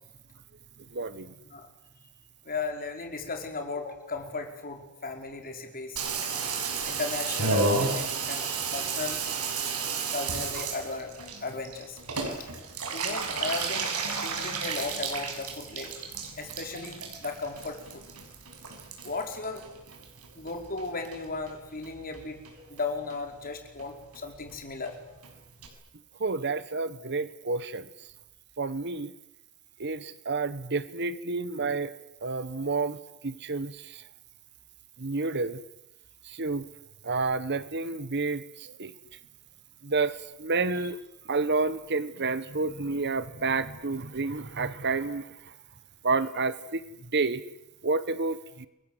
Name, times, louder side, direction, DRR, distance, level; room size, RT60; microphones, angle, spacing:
voice 1, 0.9-1.3 26.2-27.9 28.6-29.1 29.8-31.9 32.2-34.0 35.0-35.6 36.2-36.7 37.0-38.9 39.8-41.0 41.3-45.3 46.0-46.8 47.1-47.4 47.8-48.7, right 3 dB, 50° right, 15 dB, 1.2 m, -30 dB
voice 2, 2.4-6.0 6.8-9.2 10.1-12.0 12.4-12.5 12.9-13.9 14.2-15.9 16.4-18.0 19.0-19.6 20.3-22.4 22.7-25.0, left 3 dB, 40° left, 4 dB, 4.9 m, -36 dB
Water tap faucet / Bathtub (filling or washing), 6.0-20.5 20.8-21.5 21.8-21.9 22.1-22.2 22.4-22.8 23.1-23.2 23.4-23.5 23.8-23.9 24.1-24.2 24.5-24.6 24.9-25.0 25.2-25.3 25.6-25.7, right 4 dB, 85° right, 6.3 m, -32 dB
29.0 x 23.0 x 8.0 m, 0.88 s
head